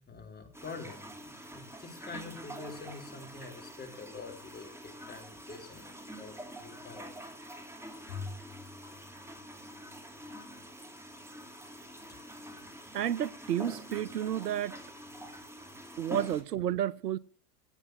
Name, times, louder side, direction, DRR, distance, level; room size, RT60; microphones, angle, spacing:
voice 1, 0.0-7.1, left 4 dB, 20° left, 4.1 m, -46 dB
sound 1, 0.5-16.4, equal, 5° right, 2.5 m, -46 dB
Bowed string instrument, 8.1-10.5, left 4 dB, 75° left, 3.9 m, -46 dB
voice 2, 12.9-14.8 16.0-17.2, right 11 dB, 80° right, 0.7 m, -31 dB
16.5 x 8.2 x 6.4 m
figure-of-eight pair, 75°, 47 cm